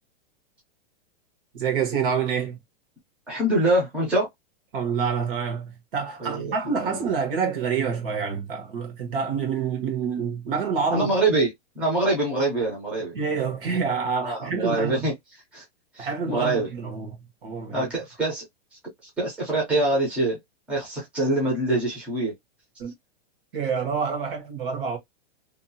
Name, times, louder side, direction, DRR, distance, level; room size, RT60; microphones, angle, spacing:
voice 1, 1.5-2.6 4.7-11.1 13.1-15.1 16.0-17.2 17.4-17.9 22.8-22.9 23.5-25.0, right 6 dB, 60° right, 1.2 m, -27 dB
voice 2, 3.3-4.3 6.2-6.5 6.8-7.1 10.9-11.5 11.7-13.1 14.2-15.1 15.5-15.6 15.9-16.7 17.7-18.4 19.0-20.4 20.7-22.3, right 2 dB, 5° right, 0.6 m, -24 dB
2.7 x 2.1 x 2.6 m
supercardioid pair, 170°, 31 cm